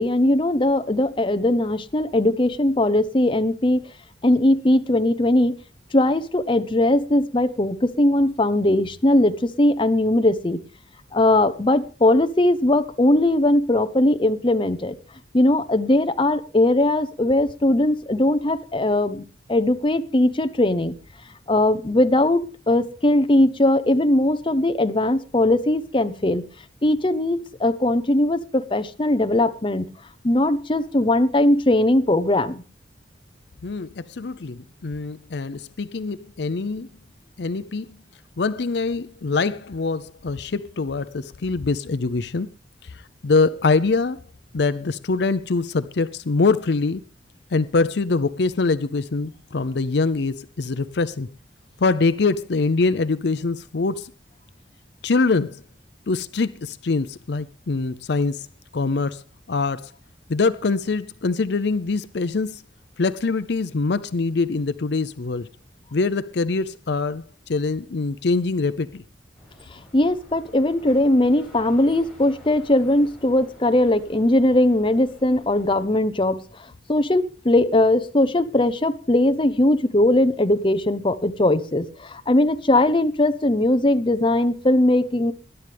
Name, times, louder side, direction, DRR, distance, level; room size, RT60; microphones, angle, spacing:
voice 1, 0.0-3.8 4.2-5.5 5.9-10.6 11.1-14.9 15.3-19.2 19.5-20.9 21.5-26.4 26.8-29.9 30.2-32.6 69.9-76.4 76.9-85.3, left 1 dB, 30° left, 0.8 m, -19 dB
voice 2, 33.6-36.9 37.4-37.9 38.4-42.5 43.2-44.2 44.5-47.0 47.5-51.3 51.8-54.1 55.0-55.6 56.1-58.5 58.7-59.2 59.5-59.9 60.3-62.6 63.0-65.5 65.9-69.0, left 3 dB, 65° left, 0.6 m, -24 dB
sound 1, 69.3-75.9, left 1 dB, ahead, 7.7 m, -49 dB
20.5 x 11.0 x 3.4 m
head